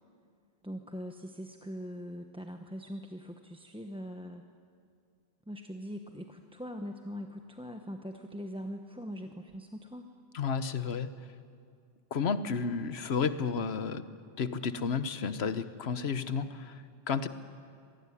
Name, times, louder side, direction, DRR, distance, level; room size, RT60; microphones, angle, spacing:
voice 1, 0.6-4.4 5.5-10.1, equal, 5° right, 5 dB, 0.9 m, -42 dB
voice 2, 10.3-11.1 12.1-14.0 14.4-17.3, left 5 dB, 75° left, 12 dB, 1.3 m, -32 dB
25.5 x 18.0 x 9.9 m, 2.3 s
omnidirectional pair, 1.1 m